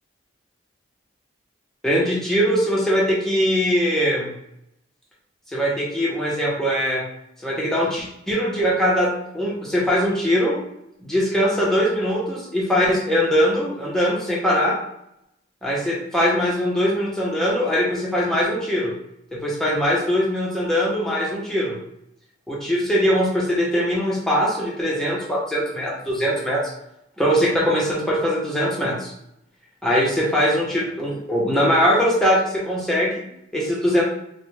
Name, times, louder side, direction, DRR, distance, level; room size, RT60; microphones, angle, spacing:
voice 1, 1.8-4.3 5.5-7.0 7.4-10.6 11.0-14.8 15.6-18.9 19.3-21.7 22.5-26.7 27.2-29.1 29.8-33.2 33.5-34.0, equal, ahead, -5 dB, 0.9 m, -21 dB
4.0 x 2.2 x 3.2 m, 0.80 s
head